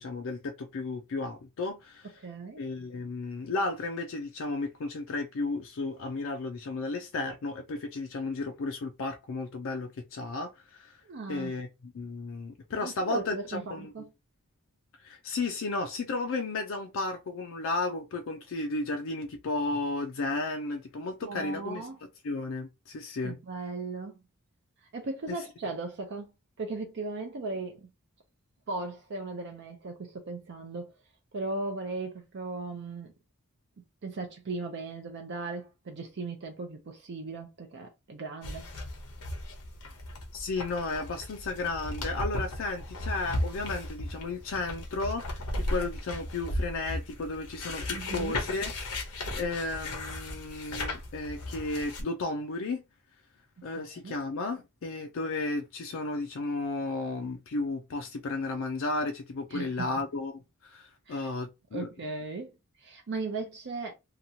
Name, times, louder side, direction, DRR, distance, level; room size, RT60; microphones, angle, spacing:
voice 1, 0.0-2.1 2.6-10.9 11.3-13.9 15.0-21.9 22.2-23.4 40.3-48.7 49.0-49.1 49.3-52.8 53.6-61.9, left 3 dB, 60° left, 0.4 m, -33 dB
voice 2, 2.2-2.6 11.1-11.5 12.8-14.1 21.2-22.0 23.2-24.2 24.9-26.3 26.6-27.9 28.7-30.9 31.3-33.1 33.8-38.7 47.9-48.4 53.6-54.2 59.5-59.9 61.1-61.3 61.7-62.5 62.8-63.9, right 3 dB, 50° right, 0.5 m, -37 dB
sound 1, 38.4-52.0, left 1 dB, 80° left, 0.8 m, -36 dB
2.9 x 2.3 x 2.7 m
head